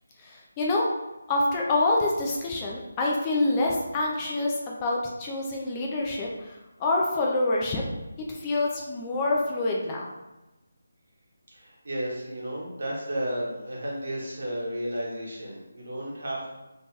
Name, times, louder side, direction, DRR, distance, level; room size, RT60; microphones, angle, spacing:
voice 1, 0.2-0.9 1.3-7.8 8.3-10.1, left 2 dB, 20° left, -2 dB, 0.3 m, -26 dB
voice 2, 11.5-16.5, right 1 dB, 65° right, -4 dB, 1.0 m, -33 dB
2.9 x 2.8 x 2.3 m, 1.0 s
figure-of-eight pair, 165°, 0 cm